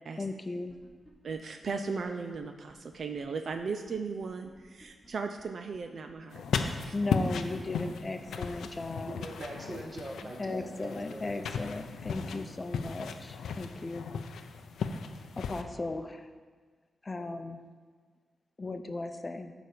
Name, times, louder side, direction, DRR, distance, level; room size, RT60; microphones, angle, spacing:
voice 1, 0.2-0.8 1.8-2.0 6.9-9.2 10.4-14.1 15.4-16.3 17.0-17.6 18.6-19.5, left 2 dB, 35° left, 8 dB, 0.6 m, -36 dB
sound 1, 0.7-1.3 1.6-1.7 2.0-2.1 2.3-2.4 2.7-3.2 3.5-3.6 3.9-4.0 4.2-5.1 5.4-5.5 5.7-5.8 6.1-6.2 6.4-7.0 7.3-7.4 7.6-7.7 8.0-8.8 9.1-9.2 9.5-9.6 9.8-9.9, equal, 5° right, 1.9 m, -58 dB
voice 2, 1.2-6.9, right 5 dB, 65° right, 6 dB, 0.5 m, -37 dB
sound 2, 6.3-15.6, left 5 dB, 85° left, 0.5 m, -36 dB
voice 3, 9.1-11.5, right 1 dB, 40° right, -1 dB, 2.0 m, -42 dB
9.8 x 4.1 x 6.6 m, 1.5 s
cardioid pair, 65°, 0 cm